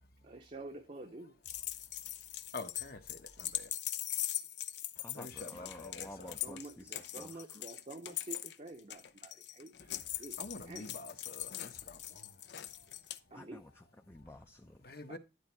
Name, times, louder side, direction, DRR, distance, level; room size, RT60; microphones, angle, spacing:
voice 1, 0.2-1.4 6.2-10.4 10.7-11.0 13.3-13.6 15.1-15.2, right 2 dB, 40° right, 0.8 m, -49 dB
sound 1, 1.4-13.2, left 13 dB, 75° left, 0.7 m, -41 dB
voice 2, 2.5-3.7 5.1-6.3 10.4-12.3 14.8-15.2, left 3 dB, 55° left, 1.2 m, -47 dB
voice 3, 5.0-7.4 13.3-14.8, left 1 dB, 15° left, 0.5 m, -51 dB
11.5 x 4.1 x 4.6 m
head